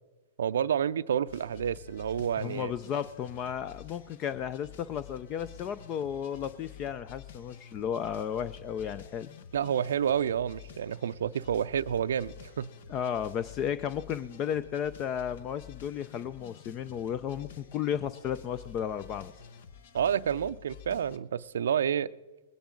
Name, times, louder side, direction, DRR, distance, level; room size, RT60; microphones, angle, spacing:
voice 1, 0.4-2.7 9.5-12.7 19.9-22.1, right 8 dB, 75° right, 0.4 m, -29 dB
sound 1, 1.3-21.2, left 8 dB, 65° left, 0.9 m, -50 dB
voice 2, 2.4-9.3 12.9-19.3, left 9 dB, 35° left, 0.5 m, -34 dB
20.0 x 10.0 x 3.9 m
hypercardioid pair, 115°, 0 cm